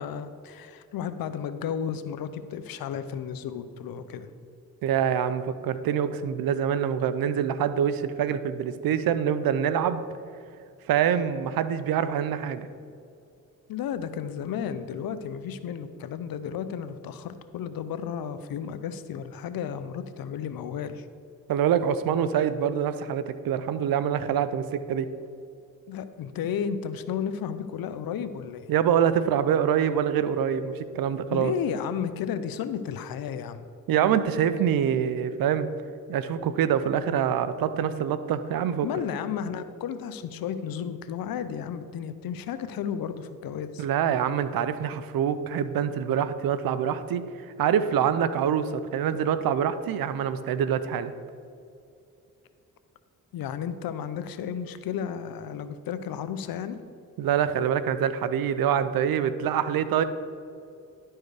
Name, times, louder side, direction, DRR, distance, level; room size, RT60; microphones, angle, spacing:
voice 1, 0.0-4.3 13.7-21.1 25.9-28.7 31.3-33.6 38.8-43.9 53.3-56.8, left 8 dB, 85° left, 12 dB, 0.6 m, -33 dB
voice 2, 4.8-10.0 10.9-12.7 21.5-25.1 28.7-31.5 33.9-35.7 36.1-38.9 43.8-47.2 47.6-51.1 57.2-60.0, right 8 dB, 80° right, 13 dB, 0.6 m, -25 dB
11.0 x 4.6 x 4.7 m, 2.5 s
cardioid pair, 55°, 35 cm